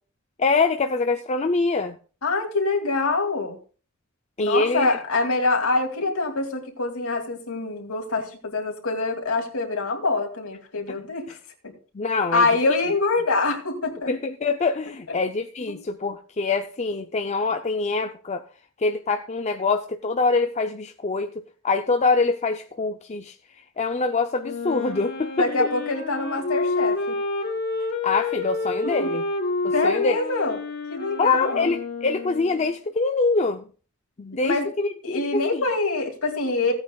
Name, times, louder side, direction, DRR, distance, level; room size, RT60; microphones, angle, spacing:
voice 1, 0.4-1.9 4.4-5.0 11.9-12.5 14.1-18.4 18.8-21.3 21.6-23.3 23.8-25.3 25.6-25.7 28.0-29.2 29.6-30.2 31.2-33.7 34.2-35.6, left 3 dB, 30° left, 6 dB, 0.5 m, -24 dB
voice 2, 2.2-3.6 4.4-11.4 11.6-11.7 12.3-14.1 15.1-15.2 15.7-15.8 25.4-27.2 28.8-29.1 29.7-30.6 30.9-31.7 34.4-34.7 35.0-36.7, left 3 dB, 80° left, 2 dB, 2.6 m, -25 dB
Wind instrument woodwind instrument, 24.4-32.7, left 3 dB, 50° left, 3.0 m, -29 dB
16.5 x 8.7 x 2.3 m, 0.38 s
head